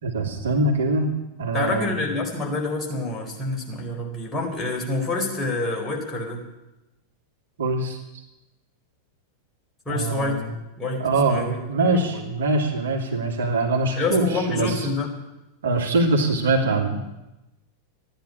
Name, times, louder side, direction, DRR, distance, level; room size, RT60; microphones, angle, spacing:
voice 1, 0.0-1.1 1.4-1.9 7.6-8.0 9.9-10.5 11.0-14.9 15.6-17.0, right 2 dB, 65° right, 1 dB, 2.6 m, -23 dB
voice 2, 1.5-6.4 9.9-10.4 10.8-12.3 14.0-15.1, left 3 dB, 15° left, -1 dB, 4.4 m, -27 dB
14.0 x 10.5 x 9.9 m, 0.96 s
figure-of-eight pair, 90°, 0 cm